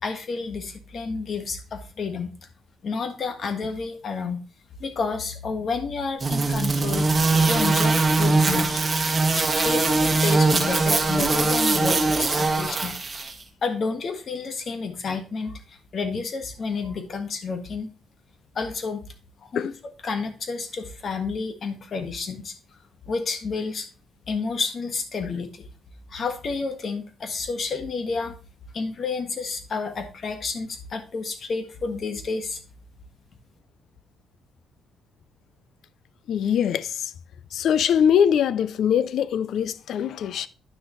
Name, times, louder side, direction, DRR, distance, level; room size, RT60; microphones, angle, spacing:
voice 1, 0.0-2.3 2.8-4.4 4.8-7.1 7.5-8.8 9.3-12.9 13.6-17.9 18.5-19.0 19.4-19.7 20.0-22.5 23.1-23.9 24.3-25.6 26.1-28.3 28.7-32.6, left 4 dB, 50° left, 1.5 m, -30 dB
sound 1, 6.2-13.3, right 3 dB, 30° right, 1.4 m, -21 dB
voice 2, 36.3-37.1 37.5-40.5, left 8 dB, 70° left, 0.4 m, -22 dB
9.8 x 6.1 x 3.1 m
cardioid pair, 90°, 0 cm